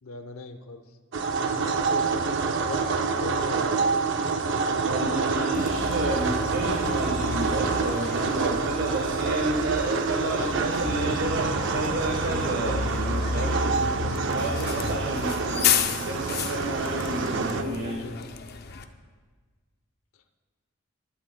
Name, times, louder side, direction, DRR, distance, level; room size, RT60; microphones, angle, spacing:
voice 1, 0.0-0.9 1.3-4.0 10.2-10.7 14.4-14.7 17.9-18.3, left 2 dB, 90° left, 8 dB, 0.8 m, -39 dB
sound 1, 1.1-17.6, right 4 dB, 60° right, 0.6 m, -27 dB
voice 2, 4.8-18.0, right 2 dB, 85° right, -2 dB, 1.4 m, -31 dB
Bus, 5.5-18.8, left 5 dB, 50° left, 0.6 m, -32 dB
20.5 x 11.0 x 2.3 m, 1.4 s
head